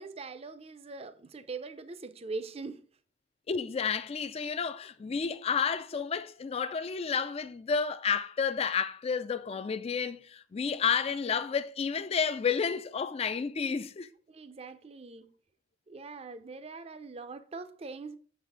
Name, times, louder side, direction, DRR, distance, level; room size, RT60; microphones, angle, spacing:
voice 1, 0.0-2.9 14.3-15.3 15.9-18.2, right 4 dB, 30° right, 0.5 m, -42 dB
voice 2, 3.5-14.1, left 6 dB, 30° left, 0.3 m, -31 dB
6.6 x 4.1 x 4.9 m
head